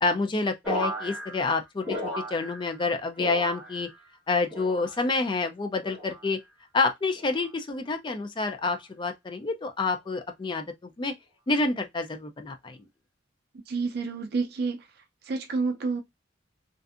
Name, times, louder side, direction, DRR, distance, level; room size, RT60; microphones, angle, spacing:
voice 1, 0.0-3.9 4.3-6.4 6.7-11.1 11.5-12.8, left 3 dB, 25° left, 0.4 m, -28 dB
sound 1, 0.6-2.9 3.1-4.0 4.5-5.2 5.8-6.3 7.1-7.5 8.5-8.8, equal, 5° right, 1.0 m, -36 dB
voice 2, 13.7-14.9 15.2-16.0, right 4 dB, 55° right, 0.4 m, -29 dB
2.5 x 2.5 x 2.4 m
head